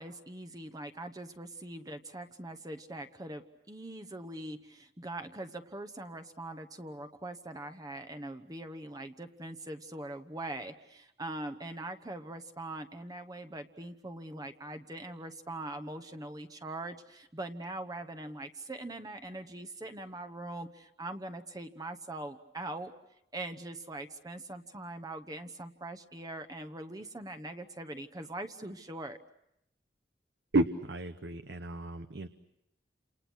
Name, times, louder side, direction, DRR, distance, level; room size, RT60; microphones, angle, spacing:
voice 1, 0.0-22.9 23.3-29.2, right 2 dB, 20° right, 8 dB, 1.0 m, -42 dB
voice 2, 30.5-32.3, right 2 dB, 70° right, 9 dB, 0.9 m, -31 dB
29.5 x 28.0 x 6.3 m, 0.83 s
head